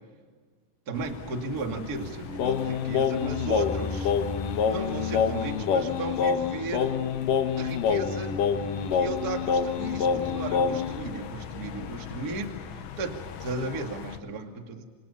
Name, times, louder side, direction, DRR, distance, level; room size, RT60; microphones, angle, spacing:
sound 1, 0.9-14.2, left 7 dB, 85° left, 3.9 m, -40 dB
voice 1, 0.9-4.1 4.6-7.0 7.6-8.4 8.9-14.8, right 3 dB, 30° right, 4 dB, 1.9 m, -35 dB
Singing, 2.4-11.0, left 6 dB, 65° left, 2.4 m, -26 dB
28.5 x 27.5 x 5.6 m, 1.5 s
omnidirectional pair, 5.2 m